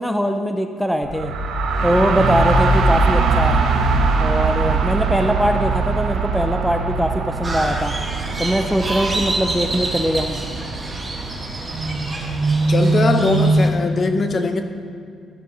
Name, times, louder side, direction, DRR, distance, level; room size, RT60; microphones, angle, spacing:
voice 1, 0.0-1.3 1.8-3.6 4.2-7.9 8.4-10.4, equal, ahead, 6 dB, 0.4 m, -21 dB
sound 1, 1.0-12.7, right 3 dB, 70° right, 0.7 m, -22 dB
Crow, 7.4-13.7, right 2 dB, 25° right, 1.2 m, -23 dB
voice 2, 12.7-14.6, left 3 dB, 40° left, 6 dB, 0.6 m, -20 dB
13.0 x 6.1 x 2.7 m, 2.3 s
cardioid pair, 90°, 0 cm